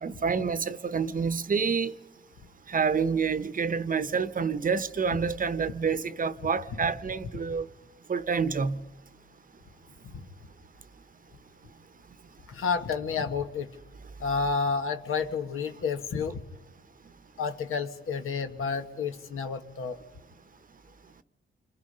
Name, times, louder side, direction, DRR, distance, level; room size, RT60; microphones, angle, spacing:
voice 1, 0.0-1.9 2.7-7.7 8.1-8.8, right 5 dB, 40° right, 0.9 m, -28 dB
voice 2, 12.5-13.7 14.2-16.4 17.4-20.0, left 5 dB, 85° left, 1.6 m, -30 dB
29.0 x 26.0 x 5.5 m
cardioid pair, 105°, 21 cm